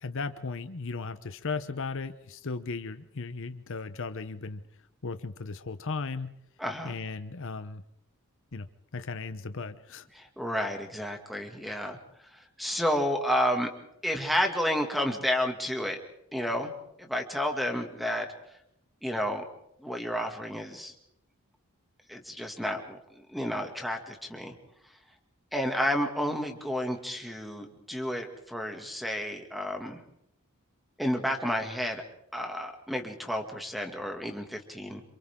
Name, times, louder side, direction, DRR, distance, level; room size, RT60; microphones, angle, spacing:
voice 1, 0.0-4.6 5.0-6.4 6.8-7.8 8.5-8.7 8.9-10.1, left 4 dB, 60° left, 11 dB, 0.9 m, -36 dB
voice 2, 6.6-6.9 10.2-12.0 12.3-13.7 14.0-16.0 16.3-16.7 17.0-18.3 19.0-19.4 19.8-20.9 22.1-24.5 25.5-30.0 31.0-32.0 32.3-35.0, equal, ahead, 4 dB, 2.3 m, -31 dB
28.0 x 27.0 x 3.8 m, 0.77 s
head